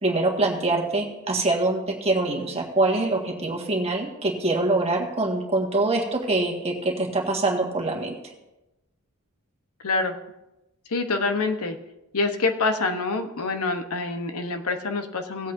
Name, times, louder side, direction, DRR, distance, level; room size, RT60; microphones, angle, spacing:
voice 1, 0.0-8.2, right 2 dB, 30° right, 0 dB, 1.6 m, -24 dB
voice 2, 9.8-10.1 10.9-11.8 12.1-15.5, left 3 dB, 75° left, 6 dB, 1.0 m, -26 dB
18.0 x 8.2 x 2.6 m, 0.97 s
head